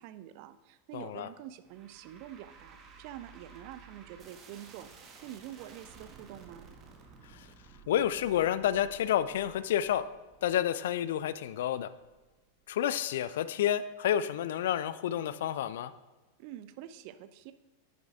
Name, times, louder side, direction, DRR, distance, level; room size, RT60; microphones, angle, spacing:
voice 1, 0.0-4.9 5.2-6.7 16.4-17.5, right 12 dB, 45° right, 12 dB, 0.5 m, -46 dB
voice 2, 0.9-1.3 7.3-7.5 7.9-10.0 10.4-11.9 12.7-15.9, left 10 dB, 55° left, 15 dB, 0.3 m, -30 dB
sound 1, 1.6-12.9, right 5 dB, 30° right, 1.2 m, -55 dB
10.0 x 9.3 x 2.4 m, 1.2 s
figure-of-eight pair, 90°, 0 cm